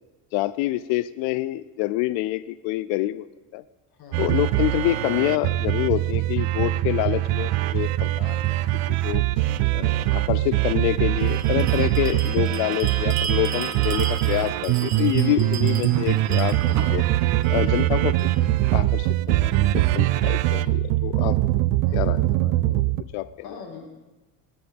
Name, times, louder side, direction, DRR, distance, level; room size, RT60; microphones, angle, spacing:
voice 1, 0.3-3.3 3.5-3.6 4.2-8.6 8.9-9.3 9.7-17.1 17.5-18.3 18.7-21.4 21.9-22.8 23.1-23.3, left 16 dB, 85° left, 16 dB, 0.5 m, -27 dB
voice 2, 4.0-4.5 5.6-5.7 9.3-9.6 11.9-12.2 15.8-16.2 17.5-17.8 21.8-22.1 23.4-23.9, left 5 dB, 55° left, 2 dB, 2.2 m, -43 dB
sound 1, 4.1-23.0, right 16 dB, 85° right, 0.6 m, -22 dB
Bell, 11.2-18.4, right 7 dB, 40° right, 1.5 m, -35 dB
20.0 x 10.0 x 3.5 m, 1.1 s
cardioid pair, 120°, 43 cm